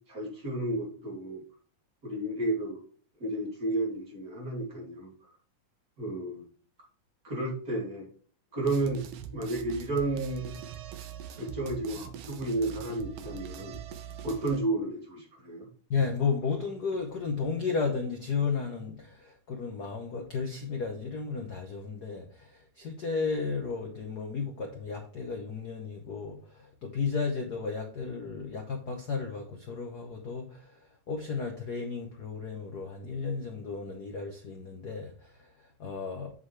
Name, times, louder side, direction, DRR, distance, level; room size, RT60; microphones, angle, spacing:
voice 1, 0.1-1.4 2.0-2.8 3.2-5.1 6.0-6.5 7.2-8.1 8.5-9.0 9.3-10.6 11.4-13.8 14.2-15.7, right 2 dB, 30° right, 3.1 m, -32 dB
sound 1, 8.6-14.6, right 9 dB, 70° right, 1.7 m, -43 dB
voice 2, 15.9-36.3, left 5 dB, 90° left, 0.8 m, -33 dB
7.8 x 7.5 x 3.3 m
omnidirectional pair, 3.4 m